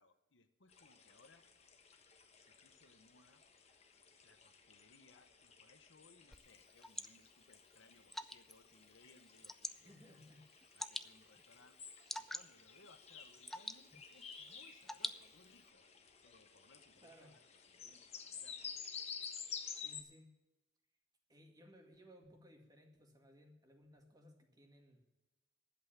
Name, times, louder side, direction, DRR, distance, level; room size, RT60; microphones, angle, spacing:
voice 1, 0.0-1.4 2.4-3.7 4.2-10.2 10.7-11.8 12.2-15.9 16.2-17.4 17.7-18.8, left 3 dB, 80° left, 9 dB, 1.0 m, -67 dB
sound 1, 0.7-20.0, left 6 dB, 35° left, 1.2 m, -53 dB
Water / Drip, 6.3-15.7, left 1 dB, ahead, 0.4 m, -49 dB
voice 2, 9.8-10.7 17.0-17.4 19.8-20.3 21.3-25.0, equal, 20° right, 3 dB, 2.0 m, -61 dB
11.5 x 8.0 x 8.7 m, 1.0 s
head